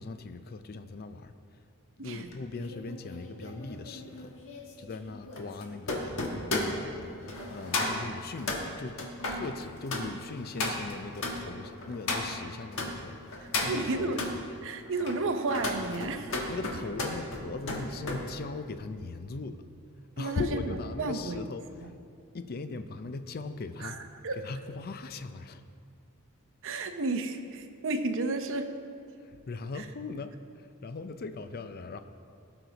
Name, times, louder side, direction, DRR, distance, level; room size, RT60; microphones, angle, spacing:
voice 1, 0.0-1.6 2.0-4.3 4.8-6.2 6.5-7.1 7.5-9.0 9.3-14.2 16.5-19.6 20.2-21.9 22.3-24.0 24.4-25.6 29.2-32.0, left 3 dB, 45° left, 10 dB, 0.5 m, -39 dB
sound 1, 2.3-12.9 13.3-14.3 14.9-18.2 18.6-18.9, left 2 dB, 60° left, 1.4 m, -34 dB
voice 2, 13.7-14.2 14.6-16.3 20.2-21.5 21.8-21.9 23.8-24.4 26.6-28.7 29.7-29.8, right 3 dB, 60° right, 7 dB, 0.8 m, -32 dB
17.5 x 6.1 x 4.0 m, 2.3 s
head